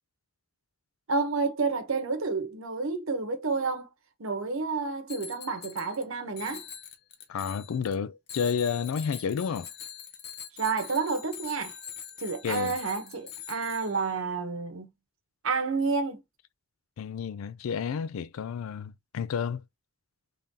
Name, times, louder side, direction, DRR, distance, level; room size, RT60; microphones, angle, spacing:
voice 1, 1.1-3.9 4.2-6.6 10.5-11.7 12.2-14.9 15.4-16.2, right 4 dB, 85° right, 0.9 m, -30 dB
Bicycle bell, 5.1-6.0 6.4-8.0 8.3-14.2, left 9 dB, 50° left, 0.6 m, -44 dB
voice 2, 7.3-9.7 12.4-12.8 17.0-19.6, left 6 dB, 90° left, 0.3 m, -31 dB
3.7 x 3.5 x 2.7 m
head